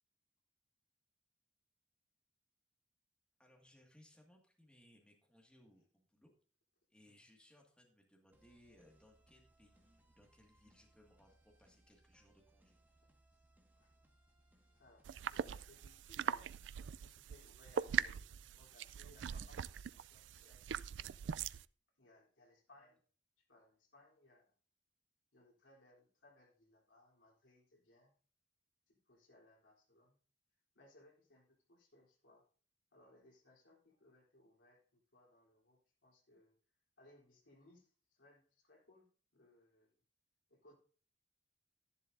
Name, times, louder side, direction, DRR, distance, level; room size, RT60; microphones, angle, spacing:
voice 1, 3.4-6.3 6.9-13.1 22.8-22.9, left 1 dB, 5° left, 0 dB, 2.0 m, -67 dB
sound 1, 8.3-15.9, right 1 dB, 10° right, 1.6 m, -71 dB
voice 2, 13.3-14.0 14.7-16.5 17.0-20.7 22.0-23.1 23.4-24.5 25.3-28.1 28.9-30.2 30.7-32.5 32.9-36.6 37.0-40.0 40.5-40.7, left 1 dB, 85° left, -2 dB, 3.5 m, -67 dB
sound 2, 15.0-21.6, right 8 dB, 70° right, 0.3 m, -41 dB
12.5 x 11.0 x 2.6 m, 0.42 s
head